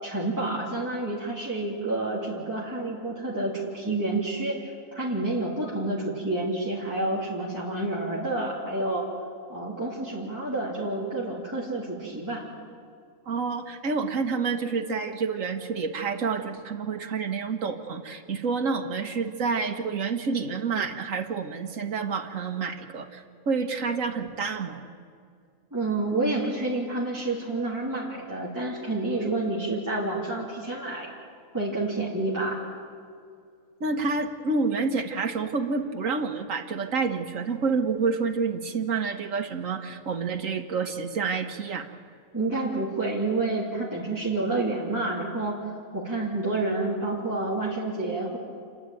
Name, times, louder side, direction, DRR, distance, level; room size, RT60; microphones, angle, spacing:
voice 1, 0.0-9.1 9.5-12.4 25.7-31.1 31.5-32.6 42.3-48.4, right 2 dB, 15° right, -7 dB, 3.0 m, -29 dB
voice 2, 13.3-24.9 33.8-41.9, right 4 dB, 70° right, 5 dB, 1.7 m, -28 dB
29.5 x 11.5 x 9.2 m, 2.2 s
omnidirectional pair, 1.4 m